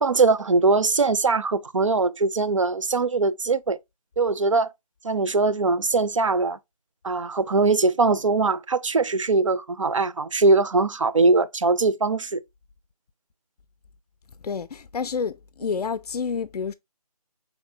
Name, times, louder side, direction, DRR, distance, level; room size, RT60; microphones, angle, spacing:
voice 1, 0.0-3.8 4.2-4.7 5.0-6.6 7.0-12.4, right 3 dB, 55° right, 0.4 m, -21 dB
voice 2, 14.4-16.7, left 5 dB, 75° left, 0.4 m, -29 dB
5.2 x 3.5 x 2.7 m
figure-of-eight pair, 170°, 20 cm